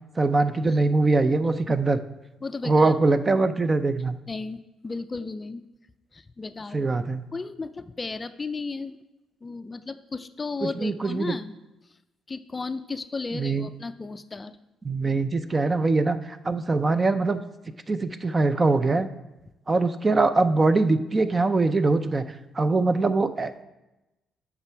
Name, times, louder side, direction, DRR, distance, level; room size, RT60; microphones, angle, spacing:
voice 1, 0.2-2.0 2.6-4.2 6.7-7.2 10.6-11.3 13.3-13.7 14.8-17.4 17.9-19.1 19.7-22.2 22.5-23.6, right 3 dB, 25° right, 11 dB, 0.5 m, -22 dB
voice 2, 2.4-2.9 4.3-5.7 6.1-6.9 7.3-9.0 9.4-11.5 12.3-14.6, left 4 dB, 25° left, 11 dB, 0.4 m, -34 dB
8.8 x 6.1 x 4.5 m, 0.99 s
cardioid pair, 90°, 0 cm